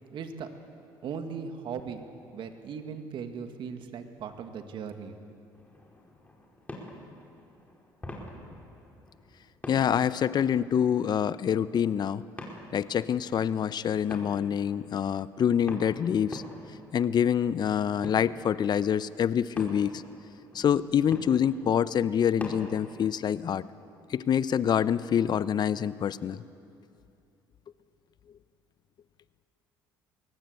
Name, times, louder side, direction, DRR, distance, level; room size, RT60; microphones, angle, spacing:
voice 1, 0.1-0.5 1.0-2.0 2.3-5.4, right 6 dB, 60° right, 6 dB, 2.1 m, -38 dB
sound 1, 5.5-23.0, left 1 dB, 15° left, 4.9 m, -47 dB
voice 2, 9.7-12.2 12.7-16.4 16.9-20.0 20.5-23.6 24.1-26.4, left 8 dB, 50° left, 16 dB, 0.8 m, -26 dB
22.0 x 18.0 x 8.2 m, 2.6 s
supercardioid pair, 70°, 9 cm